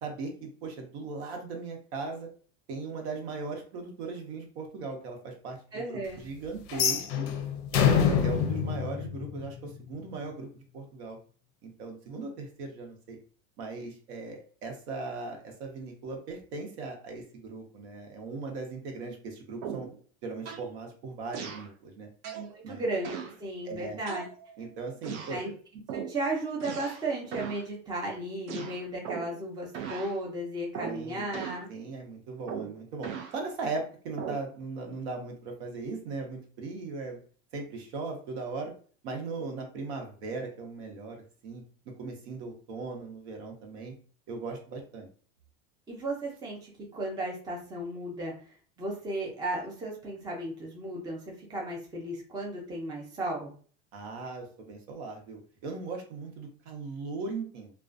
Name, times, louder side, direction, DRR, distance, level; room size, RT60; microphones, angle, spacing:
voice 1, 0.0-2.3 2.7-7.3 7.7-11.2 11.6-13.2 13.6-19.9 20.2-22.1 22.6-22.8 23.6-24.0 24.6-25.4 30.8-31.3 31.7-37.2 37.5-38.7 39.0-41.2 41.4-41.6 42.0-43.9 44.3-45.1 53.9-57.7, right 4 dB, 70° right, 2 dB, 0.9 m, -38 dB
voice 2, 5.7-6.2 22.3-23.1 23.4-24.2 25.3-25.5 25.9-31.7 45.9-48.3 48.8-53.5, right 1 dB, 10° right, -2 dB, 0.5 m, -35 dB
sound 1, 6.7-9.8, left 8 dB, 50° left, 0.5 m, -26 dB
sound 2, 19.6-20.0 20.4-20.7 21.3-21.7 22.2-22.5 23.0-23.4 24.1-24.6 25.0-25.4 25.9-26.2 26.6-27.1 27.3-27.6 28.5-29.4 29.7-30.1 30.7-31.0 31.3-31.7 32.5-33.4 34.2-34.5, right 7 dB, 85° right, 0.5 m, -38 dB
2.4 x 2.2 x 2.4 m, 0.42 s
supercardioid pair, 145°, 34 cm